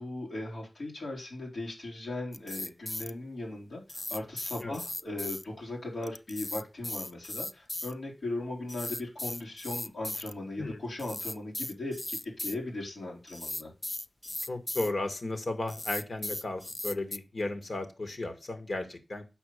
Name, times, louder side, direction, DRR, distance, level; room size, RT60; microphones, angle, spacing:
voice 1, 0.0-13.7, left 2 dB, 90° left, -2 dB, 3.9 m, -38 dB
sound 1, 2.3-3.1 3.9-5.4 6.0-7.9 8.7-10.3 11.0-12.6 13.3-14.9 15.7-17.2, left 1 dB, 30° left, 0.4 m, -37 dB
voice 2, 14.5-19.3, left 2 dB, 65° left, 7 dB, 1.9 m, -34 dB
7.1 x 5.4 x 6.7 m, 0.29 s
cardioid pair, 45°, 0 cm